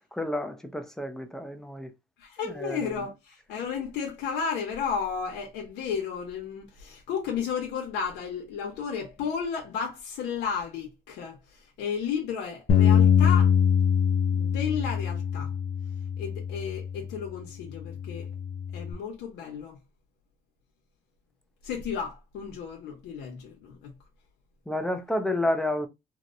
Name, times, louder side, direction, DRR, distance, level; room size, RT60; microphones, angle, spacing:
voice 1, 0.1-1.9 2.5-3.0 24.7-25.9, left 1 dB, 5° left, 0.5 m, -30 dB
voice 2, 2.2-13.5 14.3-15.5 16.2-18.2 18.7-19.8 21.6-23.9, left 6 dB, 85° left, 0.8 m, -33 dB
Bass guitar, 12.7-17.2 17.8-18.9, left 7 dB, 50° left, 0.6 m, -24 dB
2.8 x 2.1 x 2.4 m
cardioid pair, 110°, 17 cm